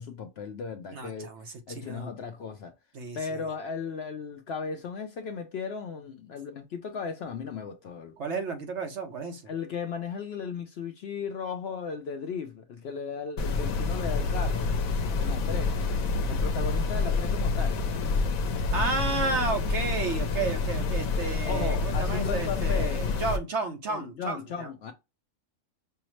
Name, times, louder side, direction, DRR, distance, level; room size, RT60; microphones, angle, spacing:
voice 1, 0.0-1.3 1.7-2.7 3.1-8.2 9.5-14.7 15.2-15.8 16.3-17.8 21.4-23.1 23.9-24.9, left 5 dB, 65° left, 0.7 m, -36 dB
voice 2, 0.9-2.1 2.9-3.5 8.2-9.5 18.7-24.9, right 4 dB, 60° right, 1.1 m, -32 dB
sound 1, 13.4-23.4, left 4 dB, 85° left, 1.0 m, -28 dB
5.5 x 2.0 x 3.0 m
omnidirectional pair, 1.4 m